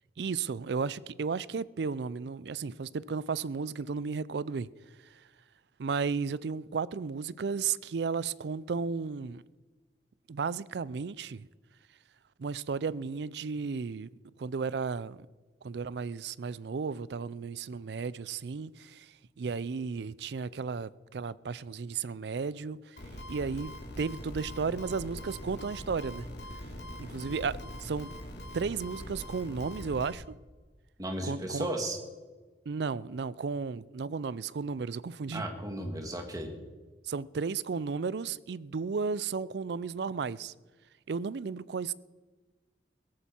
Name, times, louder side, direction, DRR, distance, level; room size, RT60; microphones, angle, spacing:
voice 1, 0.2-4.7 5.8-9.4 10.3-11.5 12.4-14.1 14.4-15.3 15.6-23.0 23.3-26.3 27.0-28.1 28.5-30.2 31.2-31.7 32.7-35.4 37.0-40.5 41.1-41.9, right 5 dB, 75° right, 0.4 m, -34 dB
sound 1, 23.0-30.1, left 1 dB, 80° left, 2.7 m, -42 dB
voice 2, 31.0-32.0 35.3-36.5, right 1 dB, 20° right, 1.8 m, -35 dB
17.0 x 14.0 x 4.4 m
head